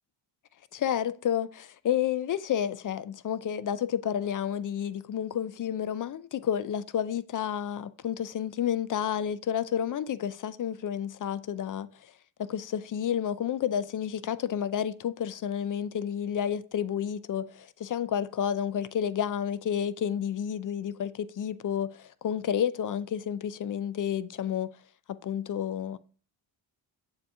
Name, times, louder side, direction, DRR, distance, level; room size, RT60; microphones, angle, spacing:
voice 1, 0.7-12.1 12.4-24.7 25.1-26.0, left 9 dB, 45° left, 0.4 m, -30 dB
7.3 x 2.9 x 4.6 m
supercardioid pair, 60°, 48 cm